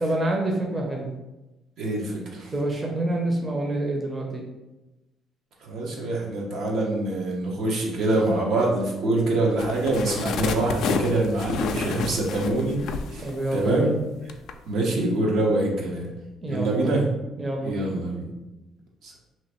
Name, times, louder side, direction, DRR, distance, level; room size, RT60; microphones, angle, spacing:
voice 1, 0.0-1.1 2.5-4.4 13.2-14.0 16.4-16.9 17.4-18.0, right 1 dB, 25° right, 0 dB, 0.7 m, -27 dB
voice 2, 1.8-2.5 5.6-13.9 14.7-16.1 16.5-17.1 17.6-18.3 19.0-19.1, right 2 dB, 75° right, -2 dB, 1.0 m, -25 dB
sound 1, 9.6-13.9 14.3-14.5, left 5 dB, 70° left, 0.3 m, -29 dB
3.0 x 2.5 x 4.3 m, 1.0 s
cardioid pair, 95°, 0 cm